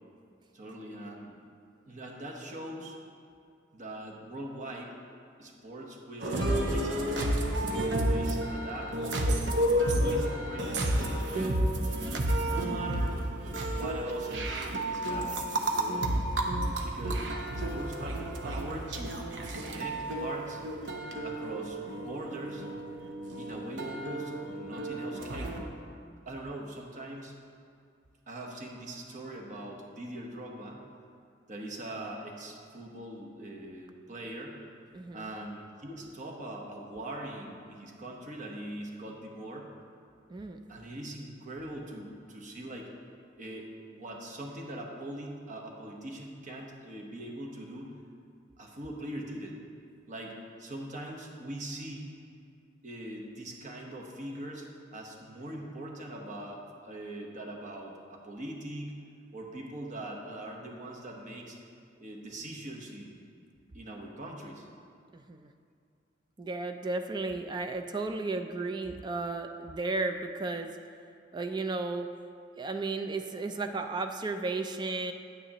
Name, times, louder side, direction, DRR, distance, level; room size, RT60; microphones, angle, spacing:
voice 1, 0.5-1.4 1.9-3.0 3.7-4.9 5.4-7.4 7.8-8.9 9.8-11.6 12.3-13.2 13.7-16.1 16.8-17.2 17.5-20.6 21.2-22.6 23.4-25.6 26.3-27.3 28.3-30.8 31.5-34.6 35.1-39.7 40.7-42.9 43.4-47.9 48.6-49.6 50.1-52.1 52.8-58.9 59.3-61.6 62.0-63.2 63.7-64.6, right 1 dB, 45° right, 0 dB, 1.1 m, -42 dB
sound 1, 6.2-25.6, right 1 dB, 70° right, 0.8 m, -31 dB
voice 2, 34.9-35.3 40.3-40.6 65.1-65.5 66.4-70.8 71.3-72.1 72.6-75.1, right 3 dB, 25° right, 6 dB, 0.3 m, -34 dB
9.7 x 9.2 x 3.0 m, 2.4 s
head